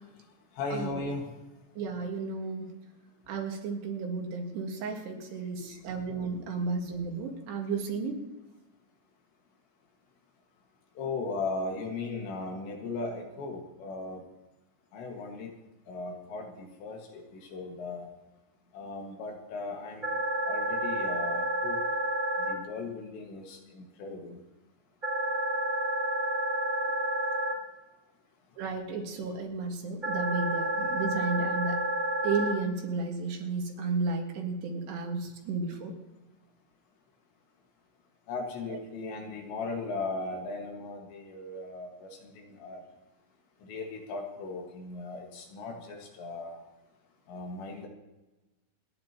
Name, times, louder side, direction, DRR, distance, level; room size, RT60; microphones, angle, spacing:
voice 1, 0.6-1.3 11.0-14.2 14.9-15.5 15.9-17.2 17.5-18.1 18.7-20.2 20.5-21.8 22.5-24.4 38.3-42.1 42.4-42.8 43.6-46.6 47.3-47.9, left 3 dB, 75° left, 1 dB, 4.1 m, -37 dB
voice 2, 1.8-2.7 3.3-8.2 28.6-31.8 32.2-35.9, right 4 dB, 70° right, 2 dB, 3.7 m, -33 dB
sound 1, 20.0-22.5 25.0-27.5 30.0-32.5, right 1 dB, 20° right, 1.2 m, -30 dB
29.0 x 10.0 x 3.0 m, 1.1 s
omnidirectional pair, 5.2 m